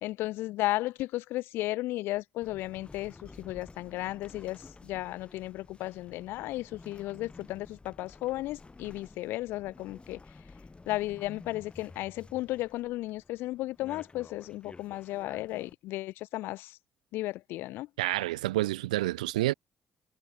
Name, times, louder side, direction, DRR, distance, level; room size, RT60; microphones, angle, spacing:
voice 1, 0.0-10.2 10.9-16.8 17.1-17.9, left 17 dB, 65° left, 0.3 m, -34 dB
sound 1, 2.4-15.7, left 3 dB, 25° left, 5.7 m, -52 dB
voice 2, 18.0-19.5, right 17 dB, 80° right, 0.4 m, -28 dB
figure-of-eight pair, 45°, 4 cm